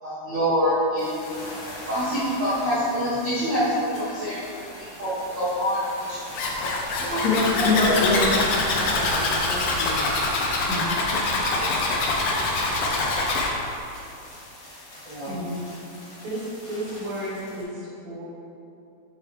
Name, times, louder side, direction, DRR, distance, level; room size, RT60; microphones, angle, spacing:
voice 1, 0.0-1.4 1.8-4.4 5.0-6.4 7.0-7.2 7.5-8.0 10.7-10.8 11.1-11.9 15.0-15.5, equal, 50° right, -13 dB, 1.4 m, -26 dB
sound 1, 1.0-17.6, left 1 dB, 45° left, 1.5 m, -42 dB
Zipper (clothing), 6.3-13.5, left 2 dB, 85° left, 1.5 m, -24 dB
voice 2, 7.2-10.0 12.6-12.7, left 3 dB, 70° left, -8 dB, 3.1 m, -26 dB
voice 3, 15.2-15.7 16.2-18.2, right 1 dB, 75° right, -9 dB, 3.6 m, -33 dB
7.0 x 6.8 x 3.0 m, 2.7 s
omnidirectional pair, 4.3 m